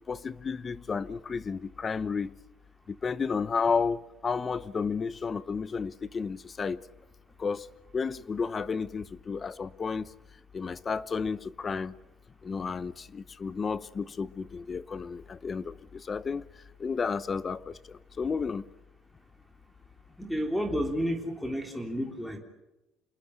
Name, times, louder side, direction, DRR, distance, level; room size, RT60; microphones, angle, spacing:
voice 1, 0.1-2.3 2.9-6.8 7.4-7.7 7.9-10.1 10.5-11.9 12.4-16.4 16.8-18.6, left 5 dB, 25° left, 0.9 m, -32 dB
voice 2, 20.2-22.4, equal, 5° left, 3.5 m, -31 dB
28.0 x 20.5 x 8.1 m
cardioid pair, 135°, 0 cm